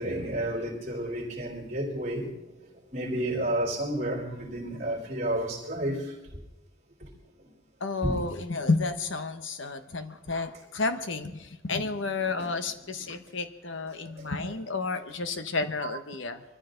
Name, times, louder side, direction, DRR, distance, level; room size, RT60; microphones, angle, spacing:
voice 1, 0.0-2.3 2.9-6.1 7.4-7.5 8.0-8.2 12.4-12.5 14.0-14.3, right 1 dB, 35° right, 3.9 m, -31 dB
voice 2, 7.8-16.4, left 3 dB, 65° left, 1.1 m, -31 dB
23.5 x 14.0 x 3.9 m
head